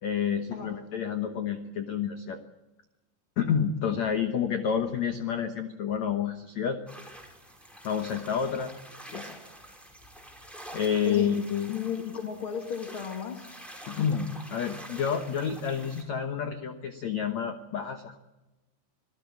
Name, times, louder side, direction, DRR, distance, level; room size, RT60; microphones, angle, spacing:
voice 1, 0.0-2.4 3.4-6.8 7.8-8.7 9.1-9.4 10.7-11.7 13.8-18.2, left 7 dB, 90° left, 7 dB, 1.5 m, -29 dB
sound 1, 6.9-16.0, right 1 dB, ahead, 4.4 m, -47 dB
voice 2, 11.7-13.4, left 7 dB, 40° left, 4 dB, 2.1 m, -34 dB
26.0 x 16.0 x 8.6 m, 1.0 s
omnidirectional pair, 5.2 m